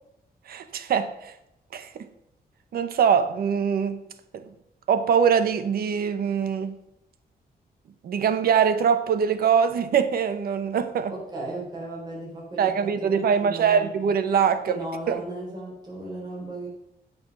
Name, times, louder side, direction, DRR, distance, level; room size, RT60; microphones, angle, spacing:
voice 1, 0.5-1.3 1.7-2.1 2.7-4.0 4.3-4.5 4.9-6.8 8.0-11.1 12.6-14.8 15.1-15.2, right 7 dB, 70° right, 1.0 m, -23 dB
voice 2, 11.1-13.9 14.7-16.7, right 2 dB, 25° right, 4.1 m, -36 dB
16.0 x 5.9 x 5.4 m
wide cardioid pair, 180°, 16 cm